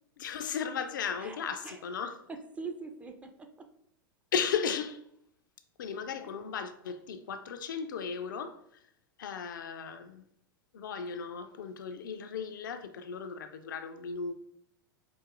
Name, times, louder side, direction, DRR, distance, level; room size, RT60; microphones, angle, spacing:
voice 1, 0.2-2.2 4.3-5.0 5.8-8.8 9.2-10.2 10.7-14.3, left 6 dB, 60° left, 0.4 m, -36 dB
voice 2, 1.2-1.8 2.3-3.7 6.2-6.4, right 4 dB, 10° right, 0.4 m, -44 dB
4.8 x 2.5 x 2.4 m
figure-of-eight pair, 90°, 12 cm